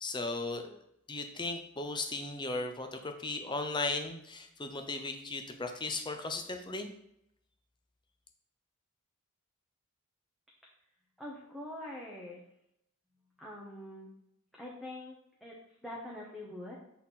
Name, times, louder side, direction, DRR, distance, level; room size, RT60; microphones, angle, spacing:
voice 1, 0.0-0.8 1.1-6.9, left 3 dB, 20° left, 6 dB, 0.7 m, -36 dB
voice 2, 11.2-12.4 13.4-14.1 14.5-16.7, left 1 dB, ahead, -5 dB, 1.0 m, -44 dB
7.4 x 4.2 x 4.1 m, 0.78 s
head